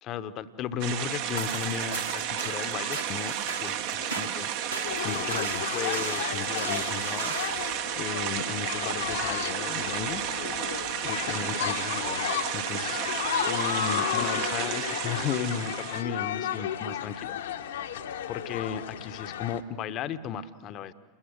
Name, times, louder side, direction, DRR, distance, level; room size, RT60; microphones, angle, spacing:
voice 1, 0.0-7.6 8.0-10.2 11.0-13.0 13.5-17.6 18.3-20.9, left 8 dB, 35° left, 13 dB, 1.0 m, -35 dB
sound 1, 0.8-16.0, right 10 dB, 50° right, 1.2 m, -32 dB
sound 2, 1.1-7.7, right 2 dB, 85° right, 3.0 m, -38 dB
sound 3, 4.8-19.6, left 9 dB, 60° left, 1.2 m, -33 dB
29.0 x 21.5 x 8.0 m, 1.4 s
figure-of-eight pair, 90°, 0 cm